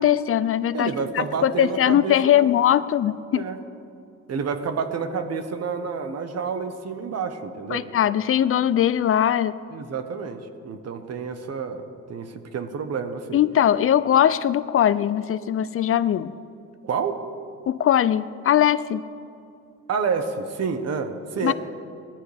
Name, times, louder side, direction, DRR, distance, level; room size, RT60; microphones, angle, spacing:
voice 1, 0.0-3.5 7.7-9.6 13.3-16.3 17.7-19.0 21.4-21.5, left 10 dB, 50° left, 16 dB, 0.4 m, -20 dB
voice 2, 0.7-2.5 3.3-3.6 4.3-7.9 9.7-11.8 12.1-13.4 16.8-17.2 19.9-21.5, right 5 dB, 55° right, 8 dB, 1.2 m, -29 dB
18.0 x 14.0 x 3.5 m, 2.6 s
cardioid pair, 90°, 30 cm